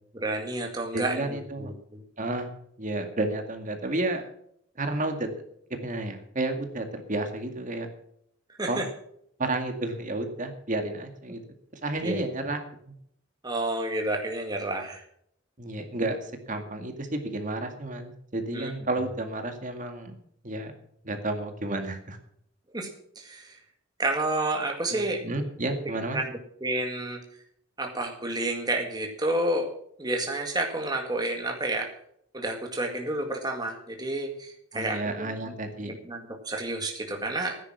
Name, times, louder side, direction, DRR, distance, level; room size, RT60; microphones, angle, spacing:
voice 1, 0.1-2.0 8.6-8.9 12.0-12.2 13.4-15.0 18.5-18.7 22.7-22.9 23.2-23.6 24.0-25.2 26.1-27.2 27.8-29.7 30.0-31.9 32.3-35.3 35.9-37.6, right 2 dB, 20° right, 2 dB, 1.9 m, -30 dB
voice 2, 0.9-1.7 2.2-2.5 2.8-4.3 4.8-5.3 5.7-7.9 8.7-8.8 9.4-11.4 11.8-12.9 15.6-20.1 20.4-20.7 21.0-22.2 24.9-26.2 34.7-35.9, right 2 dB, 40° right, 6 dB, 2.1 m, -31 dB
15.0 x 10.0 x 6.1 m, 0.69 s
head